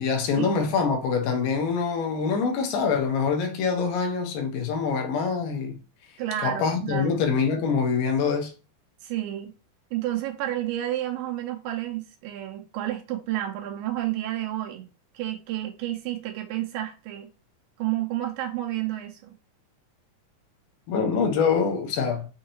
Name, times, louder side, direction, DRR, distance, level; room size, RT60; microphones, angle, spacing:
voice 1, 0.0-5.8 6.4-8.5 20.9-22.3, left 5 dB, 75° left, 2.6 m, -25 dB
voice 2, 6.2-7.3 9.0-9.5 9.9-17.3 17.8-19.3, right 13 dB, 85° right, 2.4 m, -31 dB
6.4 x 2.8 x 2.9 m
omnidirectional pair, 4.2 m